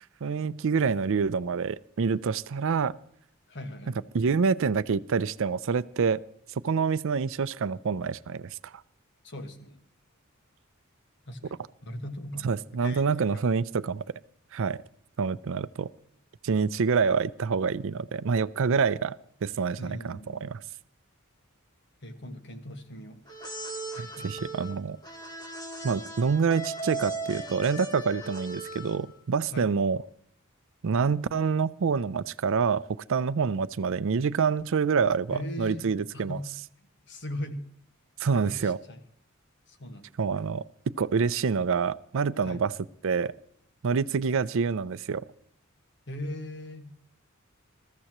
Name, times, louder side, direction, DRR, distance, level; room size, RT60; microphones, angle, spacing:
voice 1, 0.2-2.9 4.1-6.2 6.6-8.7 12.4-14.0 14.5-14.8 15.2-15.9 16.4-20.6 24.0-25.0 25.8-30.0 30.8-36.4 38.2-38.8 40.2-42.7 43.0-43.3 43.8-45.3, right 5 dB, 65° right, 16 dB, 0.5 m, -27 dB
voice 2, 3.5-4.1 9.2-9.8 11.3-11.4 11.8-12.5 12.8-13.4 19.8-20.6 22.0-23.2 23.9-24.5 29.5-29.7 35.3-36.5 37.1-37.7 38.3-39.0 39.7-40.1 42.4-42.6 46.1-46.9, left 1 dB, 55° left, 7 dB, 1.6 m, -39 dB
sound 1, 23.3-29.2, right 2 dB, 20° left, 2.2 m, -38 dB
21.0 x 14.0 x 3.0 m, 0.67 s
head